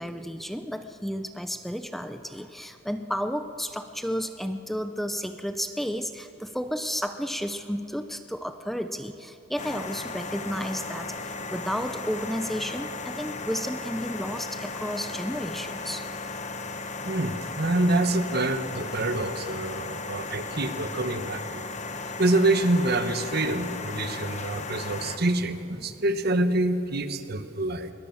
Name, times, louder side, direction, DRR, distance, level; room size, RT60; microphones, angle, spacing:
voice 1, 0.0-16.0 25.8-26.0, equal, ahead, 8 dB, 0.6 m, -32 dB
sound 1, 9.6-25.2, left 3 dB, 40° left, 1.1 m, -36 dB
voice 2, 17.0-21.6 22.2-27.9, right 2 dB, 55° right, 10 dB, 1.2 m, -26 dB
21.0 x 19.5 x 7.2 m, 2.9 s
head